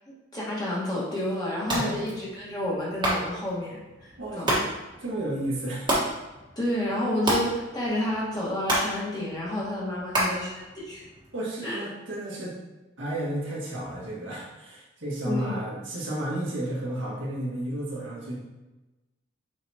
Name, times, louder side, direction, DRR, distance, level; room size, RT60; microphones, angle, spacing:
voice 1, 0.3-4.6 6.5-11.1 11.6-11.8 15.2-15.6, left 1 dB, 20° left, -6 dB, 1.6 m, -30 dB
sound 1, 1.6-11.3, right 1 dB, 20° right, 1.4 m, -32 dB
voice 2, 4.2-4.6 5.0-5.9 11.3-12.6 13.0-18.4, right 1 dB, 65° right, -5 dB, 1.8 m, -32 dB
6.9 x 4.9 x 2.9 m, 1.1 s
head